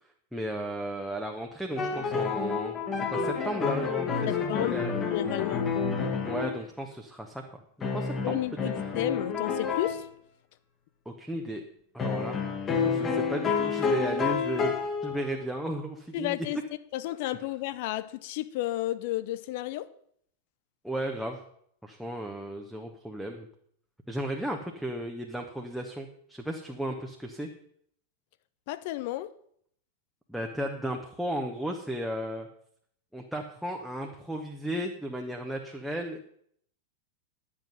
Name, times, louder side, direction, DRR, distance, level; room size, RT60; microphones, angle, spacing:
voice 1, 0.3-4.3 4.5-4.9 6.2-7.4 7.8-8.4 11.0-11.6 11.9-12.4 12.8-14.7 15.0-16.4 20.8-21.4 21.8-23.5 24.1-27.5 30.3-32.5 33.1-36.3, right 1 dB, ahead, 1 dB, 1.1 m, -34 dB
sound 1, 1.8-6.6 7.8-10.0 12.0-15.5, left 5 dB, 25° left, 1.6 m, -29 dB
voice 2, 4.3-5.7 8.2-10.1 16.1-16.6 16.9-19.9 28.7-29.3, left 15 dB, 50° left, 14 dB, 0.6 m, -32 dB
10.5 x 7.5 x 5.6 m, 0.66 s
figure-of-eight pair, 90°, 0 cm